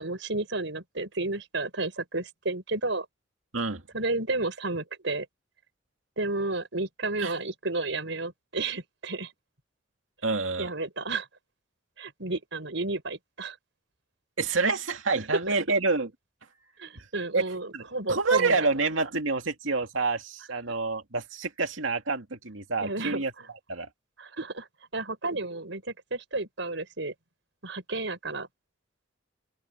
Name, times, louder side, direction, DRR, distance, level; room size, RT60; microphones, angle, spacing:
voice 1, 0.0-3.1 3.9-5.3 6.2-9.3 10.6-11.3 12.0-13.6 15.5-15.6 16.8-18.7 22.8-23.2 24.2-24.7 24.9-27.1 27.6-28.5, right 2 dB, 70° right, 5.5 m, -32 dB
voice 2, 10.2-10.7 14.4-16.1 17.0-17.1 17.3-17.4 17.7-23.3 23.7-23.9, right 3 dB, 90° right, 2.4 m, -27 dB
open air
head